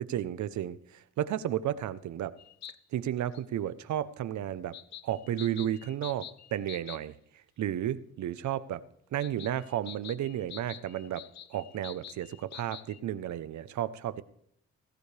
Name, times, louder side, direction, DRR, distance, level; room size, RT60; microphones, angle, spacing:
voice 1, 0.0-2.3 2.9-4.8 5.0-7.2 7.6-8.8 9.1-11.2 11.5-14.2, right 11 dB, 70° right, 0.9 m, -33 dB
sound 1, 2.4-2.8 3.3-3.4 4.7-7.0 9.2-13.0, left 11 dB, 60° left, 0.9 m, -47 dB
17.0 x 15.5 x 3.4 m
cardioid pair, 90°, 30 cm